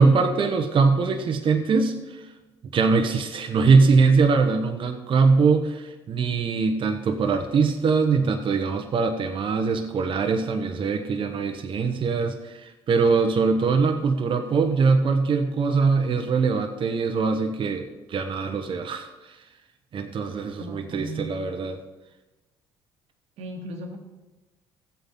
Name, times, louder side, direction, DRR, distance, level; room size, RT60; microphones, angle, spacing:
voice 1, 0.0-2.3 2.7-19.1 19.9-21.8, right 4 dB, 50° right, 5 dB, 1.0 m, -22 dB
voice 2, 20.6-21.3 23.4-24.0, right 2 dB, 70° right, 3 dB, 1.5 m, -36 dB
14.0 x 8.1 x 4.3 m, 1.1 s
supercardioid pair, 65°, 11 cm